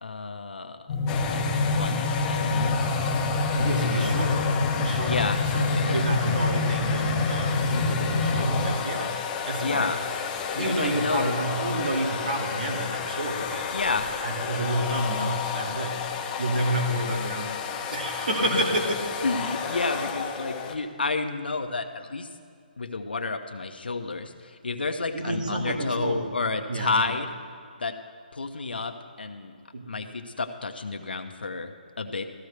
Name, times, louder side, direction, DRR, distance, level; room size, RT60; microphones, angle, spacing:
voice 1, 0.0-0.8 1.3-2.8 3.8-4.2 5.1-5.4 5.7-6.1 9.6-10.0 10.6-11.4 13.7-14.1 18.5-18.6 19.2-22.3 22.8-27.3 27.8-28.0 28.3-29.6 29.9-32.2, left 3 dB, 90° left, 7 dB, 1.0 m, -30 dB
sound 1, 0.9-8.6, left 2 dB, 30° left, 2.1 m, -26 dB
sound 2, 1.1-20.7, left 6 dB, 15° left, 0.6 m, -32 dB
voice 2, 3.5-5.3 5.5-9.9 10.6-13.7 14.2-17.5 17.9-19.0 19.4-19.6 25.1-26.3 26.7-27.1 29.7-30.0, right 1 dB, 65° right, 1 dB, 2.1 m, -29 dB
14.0 x 13.5 x 3.3 m, 2.2 s
hypercardioid pair, 160°, 5 cm